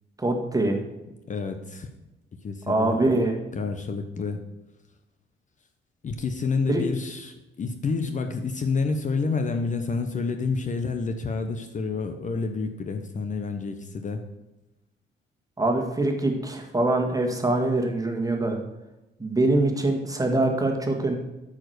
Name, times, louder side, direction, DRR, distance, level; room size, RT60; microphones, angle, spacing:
voice 1, 0.2-0.8 2.7-3.4 6.7-6.8 15.6-18.6 19.2-21.1, right 2 dB, 15° right, 3 dB, 1.7 m, -24 dB
voice 2, 1.3-1.9 2.4-3.0 3.5-4.4 6.0-14.2, left 4 dB, 40° left, 6 dB, 0.8 m, -29 dB
8.7 x 5.0 x 6.5 m, 1.0 s
cardioid pair, 90°, 20 cm